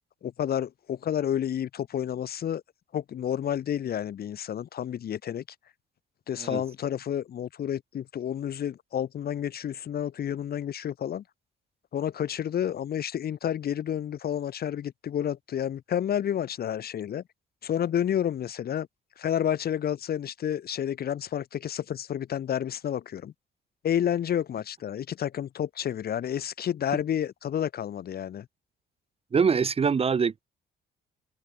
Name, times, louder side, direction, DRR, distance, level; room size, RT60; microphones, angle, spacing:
voice 1, 0.2-2.6 2.9-5.4 6.3-11.2 11.9-17.2 17.6-18.9 19.2-23.3 23.8-28.5, left 9 dB, 50° left, 0.7 m, -30 dB
voice 2, 29.3-30.4, right 6 dB, 30° right, 0.5 m, -24 dB
cardioid pair, 90°, 20 cm